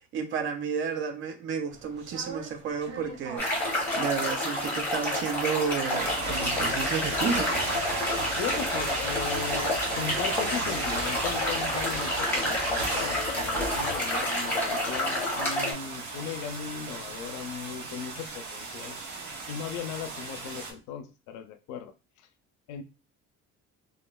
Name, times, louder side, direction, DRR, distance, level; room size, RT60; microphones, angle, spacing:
voice 1, 0.1-3.5 3.9-7.7, right 6 dB, 45° right, 0.4 m, -31 dB
sound 1, 1.7-20.7, right 3 dB, 85° right, 0.7 m, -36 dB
sound 2, 3.4-15.7, left 1 dB, 5° left, 0.8 m, -29 dB
voice 2, 8.4-19.0 19.5-21.9 22.7-22.8, left 7 dB, 90° left, 0.5 m, -37 dB
2.9 x 2.3 x 2.3 m
cardioid pair, 165°, 29 cm